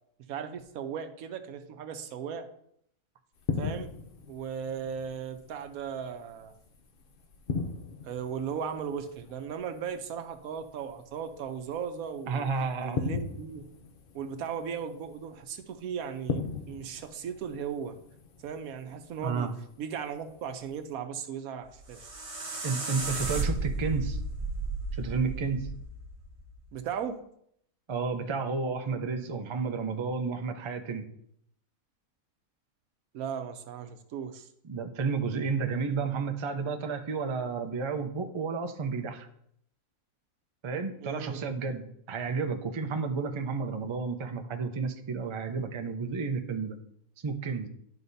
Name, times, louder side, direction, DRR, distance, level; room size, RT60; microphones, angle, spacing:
voice 1, 0.3-2.5 3.6-3.9 4.3-6.5 8.0-12.5 12.8-13.6 14.1-18.0 18.4-19.5 19.8-22.1 26.7-27.2 33.1-34.5 41.0-41.4, right 7 dB, 85° right, 8 dB, 1.2 m, -37 dB
sound 1, 3.4-20.9, left 5 dB, 50° left, 0.7 m, -40 dB
voice 2, 12.3-13.1 19.2-19.5 22.6-24.2 24.9-25.7 27.9-31.0 34.6-39.3 40.6-46.8 47.2-47.7, right 5 dB, 45° right, 6 dB, 0.3 m, -31 dB
sound 2, 21.6-26.7, right 2 dB, 30° right, 0.8 m, -34 dB
11.0 x 4.9 x 2.7 m, 0.71 s
omnidirectional pair, 1.5 m